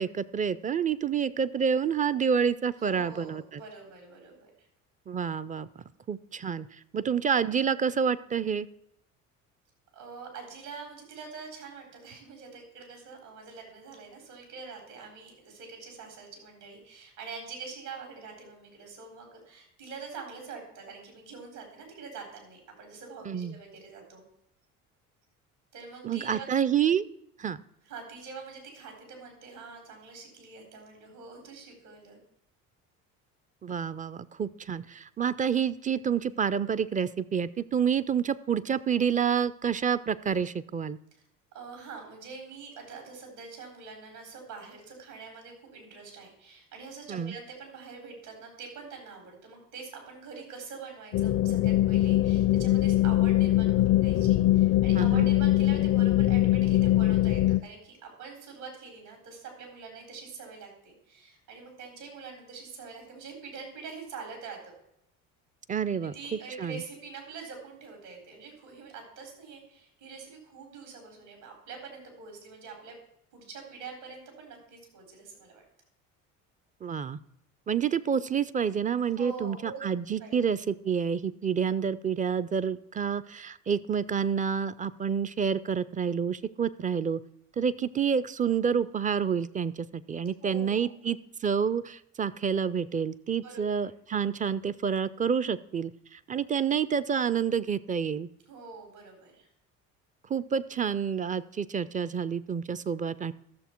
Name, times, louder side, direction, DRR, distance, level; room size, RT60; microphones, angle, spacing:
voice 1, 0.0-3.6 5.1-5.7 6.1-6.7 6.9-8.7 23.3-23.6 26.0-27.1 27.4-27.6 33.6-41.0 47.1-47.4 55.0-55.3 65.7-66.8 76.8-77.2 77.7-87.2 87.6-98.3 100.3-103.3, right 7 dB, 20° right, 16 dB, 0.4 m, -28 dB
voice 2, 2.8-4.7 9.9-24.2 25.7-26.6 27.8-32.2 41.1-41.2 41.5-64.7 65.9-72.9 73.3-75.6 79.2-79.8 80.2-80.4 90.4-90.9 93.4-93.6 98.5-99.5, right 5 dB, 80° right, 2 dB, 4.0 m, -45 dB
sound 1, 51.1-57.6, left 15 dB, 45° left, 0.4 m, -22 dB
14.0 x 6.7 x 4.5 m, 0.75 s
hypercardioid pair, 65°, 40 cm